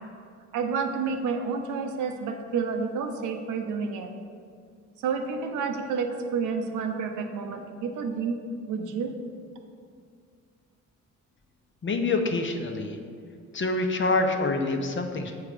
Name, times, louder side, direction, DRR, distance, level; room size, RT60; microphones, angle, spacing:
voice 1, 0.5-4.1 5.0-8.4 8.7-9.1, right 5 dB, 90° right, 4 dB, 0.9 m, -30 dB
voice 2, 11.8-13.0 13.5-15.3, left 3 dB, 40° left, 4 dB, 0.9 m, -26 dB
8.0 x 4.8 x 5.0 m, 2.2 s
cardioid pair, 90°, 30 cm